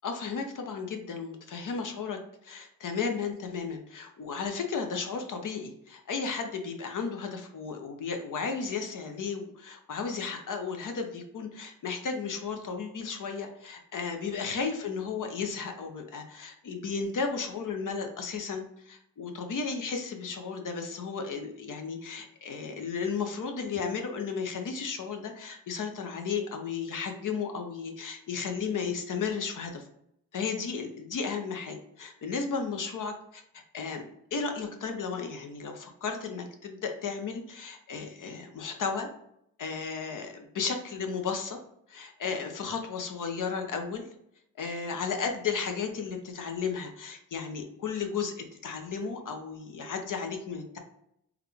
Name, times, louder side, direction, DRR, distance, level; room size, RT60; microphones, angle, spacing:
voice 1, 0.0-2.2 2.4-29.8 30.3-33.4 33.7-34.0 34.3-39.1 39.6-41.6 41.9-44.1 44.6-50.8, left 5 dB, 55° left, 5 dB, 0.8 m, -34 dB
3.6 x 2.3 x 3.4 m, 0.74 s
cardioid pair, 70°, 37 cm